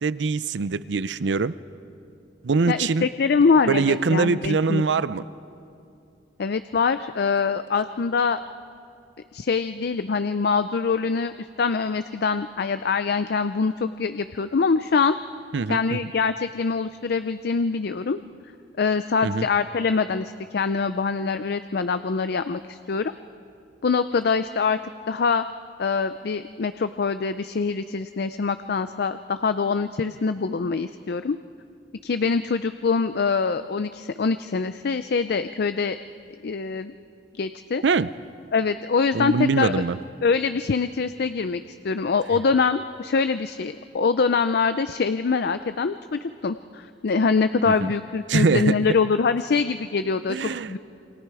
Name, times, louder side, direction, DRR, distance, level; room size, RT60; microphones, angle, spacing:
voice 1, 0.0-1.5 2.4-3.1 3.7-5.2 15.5-16.0 19.2-19.5 37.8-38.1 39.1-40.0 47.7-47.9 48.3-48.8 50.3-50.7, right 4 dB, 85° right, 16 dB, 0.6 m, -23 dB
voice 2, 2.7-4.8 6.4-8.4 9.3-15.1 15.7-18.2 18.8-23.1 23.8-24.8 25.1-25.4 25.8-31.4 32.0-36.0 36.4-36.9 37.3-37.8 38.5-39.8 40.2-50.8, left 5 dB, 60° left, 11 dB, 0.5 m, -24 dB
28.5 x 24.0 x 4.8 m, 2.6 s
head